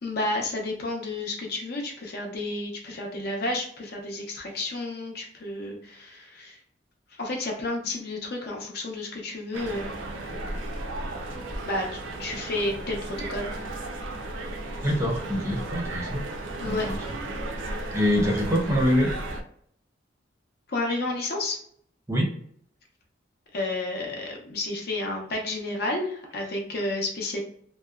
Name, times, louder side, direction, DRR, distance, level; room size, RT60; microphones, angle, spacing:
voice 1, 0.0-6.6 7.1-9.9 11.7-13.5 16.6-16.9 20.7-21.6 23.5-27.4, left 2 dB, 55° left, 0 dB, 0.6 m, -31 dB
sound 1, 9.5-19.4, right 2 dB, 85° right, 0.5 m, -34 dB
voice 2, 14.8-16.2 16.7-16.9 17.9-19.1 22.1-22.2, equal, 15° right, -2 dB, 0.6 m, -24 dB
2.7 x 2.1 x 2.3 m, 0.63 s
head